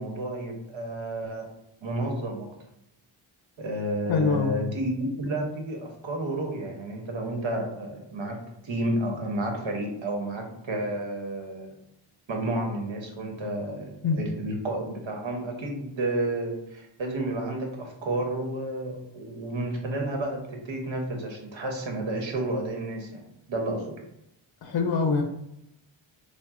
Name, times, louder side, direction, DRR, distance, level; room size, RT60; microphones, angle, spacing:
voice 1, 0.0-1.5 1.8-2.5 3.6-8.4 8.6-11.7 12.3-24.0, right 1 dB, 70° right, 2 dB, 1.0 m, -31 dB
voice 2, 4.1-4.6 14.0-14.3 24.6-25.2, left 4 dB, 55° left, 4 dB, 0.6 m, -24 dB
4.0 x 2.1 x 3.6 m, 0.82 s
cardioid pair, 65°, 47 cm